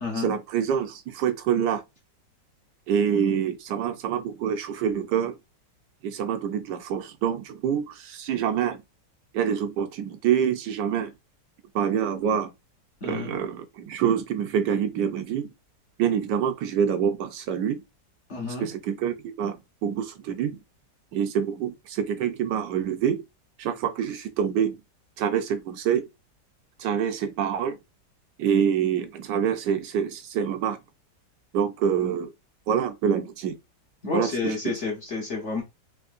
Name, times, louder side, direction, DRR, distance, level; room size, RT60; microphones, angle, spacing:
voice 1, 0.2-1.8 2.9-5.3 6.0-8.8 9.3-11.1 11.7-12.5 13.0-15.5 16.0-17.8 18.6-19.6 19.8-20.6 21.1-23.2 23.6-24.8 25.2-26.1 26.8-27.8 28.4-30.8 31.5-32.3 32.7-33.5 34.1-34.7, right 8 dB, 75° right, 1.2 m, -26 dB
voice 2, 13.0-13.3 18.3-18.7 34.0-35.6, left 3 dB, 45° left, 1.1 m, -30 dB
3.6 x 2.9 x 2.4 m
omnidirectional pair, 1.9 m